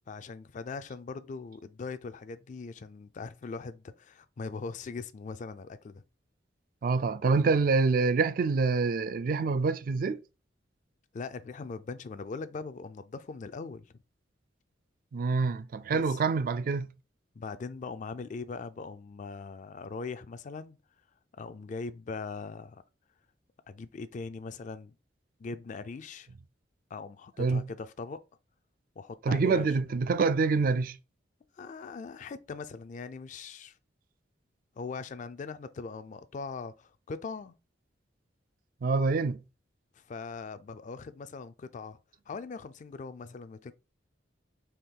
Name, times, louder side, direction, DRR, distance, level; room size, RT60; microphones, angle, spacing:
voice 1, 0.1-6.0 11.1-13.9 15.9-16.2 17.3-20.8 21.4-22.8 23.7-24.9 25.4-26.3 26.9-28.2 29.0-29.7 31.5-33.8 34.8-37.5 40.0-42.0 42.3-43.7, left 4 dB, 45° left, 0.3 m, -40 dB
voice 2, 6.8-10.2 15.1-16.9 27.4-27.7 29.2-31.0 38.8-39.4, right 4 dB, 50° right, 0.3 m, -26 dB
4.3 x 3.0 x 3.7 m
head